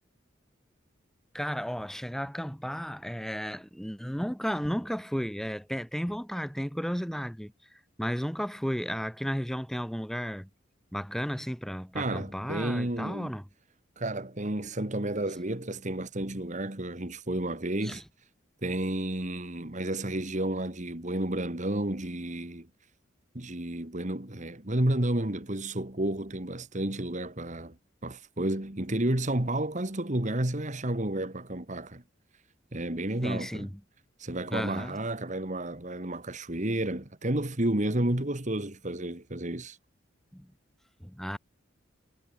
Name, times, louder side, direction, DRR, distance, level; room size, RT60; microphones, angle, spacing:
voice 1, 1.3-7.5 8.0-10.5 10.9-13.4 17.8-18.0 33.2-33.7 34.5-35.0 40.3-40.5 41.0-41.4, equal, ahead, 4.3 m, -33 dB
voice 2, 11.9-13.3 14.0-18.0 18.6-22.7 23.3-27.8 28.0-32.0 32.7-33.7 34.2-39.8, right 1 dB, 40° right, 2.2 m, -31 dB
head